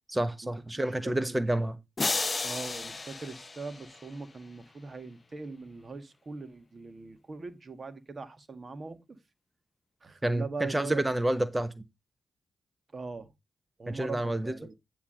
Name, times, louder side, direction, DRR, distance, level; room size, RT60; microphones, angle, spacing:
voice 1, 0.1-1.8 10.2-11.7 13.9-14.5, right 1 dB, 20° right, 1.1 m, -29 dB
voice 2, 0.8-1.6 2.4-9.2 10.0-11.0 12.9-13.3 13.8-14.7, right 4 dB, 45° right, 1.7 m, -41 dB
sound 1, 2.0-4.3, left 3 dB, 40° left, 0.5 m, -33 dB
9.8 x 3.4 x 6.7 m
hypercardioid pair, 45°, 0 cm